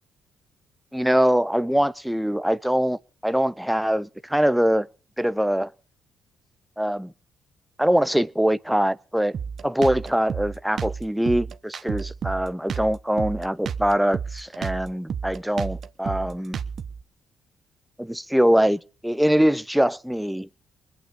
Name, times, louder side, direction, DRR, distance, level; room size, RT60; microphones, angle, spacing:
voice 1, 0.9-4.9 5.2-5.7 6.8-7.1 7.8-9.4 9.6-16.6 18.0-20.6, equal, 5° right, 0.8 m, -23 dB
Drum kit, 9.3-17.0, right 7 dB, 55° right, 1.1 m, -31 dB
20.5 x 9.1 x 6.9 m
cardioid pair, 90°, 0 cm